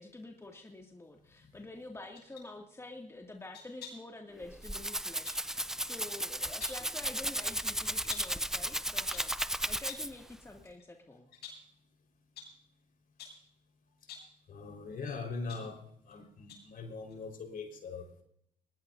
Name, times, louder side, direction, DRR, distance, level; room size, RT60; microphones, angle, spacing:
voice 1, 0.0-9.3 9.7-11.3, left 2 dB, 15° left, 1 dB, 2.2 m, -48 dB
sound 1, 2.1-2.5 3.5-4.1 5.3-5.5 6.4-6.9 8.1-8.4 8.9-9.4 9.9-10.2 10.6-10.8 11.3-11.7 12.4-12.6 13.2-13.5 14.0-14.4 15.1-16.1 16.5-16.8 17.1-17.2, left 6 dB, 75° left, 7.7 m, -49 dB
Rattle (instrument), 4.4-10.3, right 1 dB, 5° right, 0.5 m, -35 dB
voice 2, 14.5-15.8 16.1-18.2, left 4 dB, 55° left, 3 dB, 4.6 m, -41 dB
20.0 x 20.0 x 2.7 m, 0.73 s
supercardioid pair, 75°, 17 cm